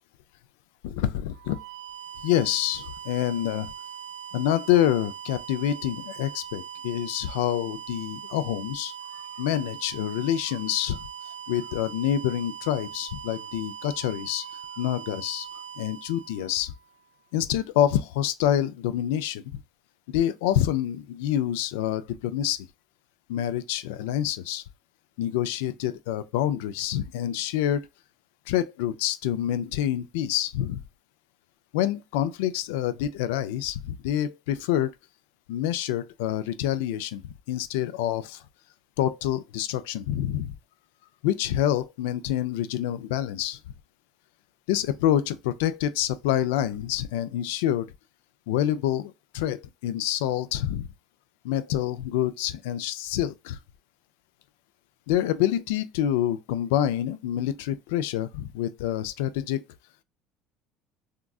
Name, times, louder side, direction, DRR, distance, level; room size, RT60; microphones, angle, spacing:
voice 1, 0.8-1.6 2.2-3.7 4.3-11.0 11.5-14.5 14.8-15.5 15.8-16.7 17.3-19.4 20.1-22.7 23.3-24.6 25.2-27.9 28.5-30.8 31.7-34.9 35.5-38.4 39.0-40.6 41.2-43.6 44.7-47.9 48.5-50.9 51.4-53.6 55.1-59.6, left 11 dB, 85° left, 0.4 m, -27 dB
sound 1, 1.3-17.1, right 9 dB, 80° right, 0.8 m, -41 dB
3.6 x 2.4 x 2.3 m
supercardioid pair, 115°, 0 cm